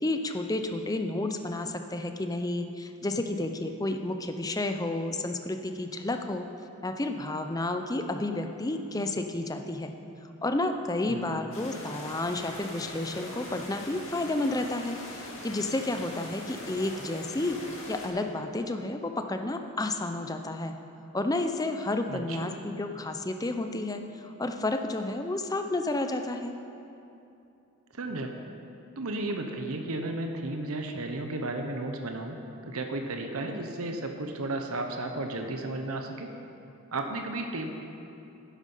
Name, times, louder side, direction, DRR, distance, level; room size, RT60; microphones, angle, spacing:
voice 1, 0.0-6.5 6.8-9.9 10.4-17.6 17.9-20.7 21.1-26.5, left 2 dB, 15° left, 6 dB, 0.6 m, -31 dB
voice 2, 11.1-11.4 22.1-22.6 28.0-28.3 29.0-32.4 32.7-36.3 36.9-37.7, right 2 dB, 80° right, 4 dB, 1.0 m, -33 dB
sound 1, 11.5-18.1, left 1 dB, 65° left, 2.3 m, -42 dB
12.0 x 10.0 x 5.5 m, 2.8 s
head